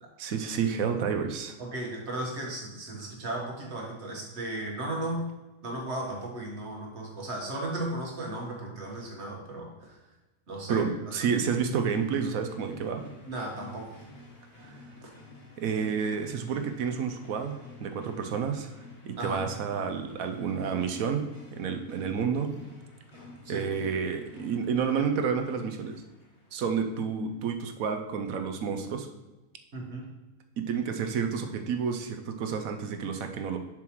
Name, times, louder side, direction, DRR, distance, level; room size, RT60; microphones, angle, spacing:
voice 1, 0.2-1.6 10.7-13.0 14.6-14.7 15.6-18.7 19.0-21.2 21.5-22.5 23.5-26.0 26.5-29.1 30.6-33.6, right 6 dB, 70° right, 6 dB, 1.1 m, -30 dB
voice 2, 1.6-5.3 5.6-10.0 10.5-10.8 13.3-14.0 15.0-15.1 19.2-19.5 23.2-23.7 29.7-30.1, right 1 dB, 45° right, -1 dB, 1.7 m, -35 dB
sound 1, 11.4-27.2, left 2 dB, 35° left, 1.2 m, -50 dB
7.0 x 6.5 x 3.0 m, 1.1 s
omnidirectional pair, 1.6 m